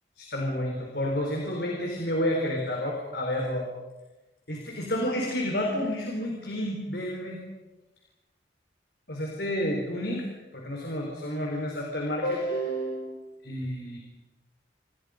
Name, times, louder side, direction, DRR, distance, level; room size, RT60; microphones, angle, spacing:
voice 1, 0.2-3.7 4.5-7.4 9.1-10.3 10.5-14.0, equal, 65° left, 0 dB, 4.6 m, -30 dB
29.0 x 28.0 x 5.3 m, 1.1 s
head